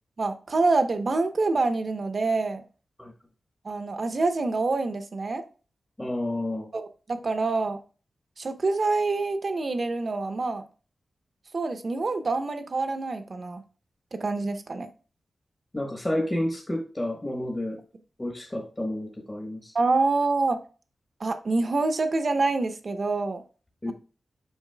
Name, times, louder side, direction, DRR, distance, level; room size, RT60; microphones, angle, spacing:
voice 1, 0.2-2.6 3.6-5.4 6.7-7.8 8.4-10.6 11.5-13.6 14.1-14.9 19.7-20.6 21.2-23.4, right 3 dB, 50° right, 8 dB, 0.8 m, -26 dB
voice 2, 6.0-6.7 15.7-17.8 18.2-19.7 23.8-23.9, left 1 dB, 20° left, 0 dB, 1.1 m, -30 dB
8.1 x 5.4 x 2.2 m, 0.36 s
wide cardioid pair, 105°, 0 cm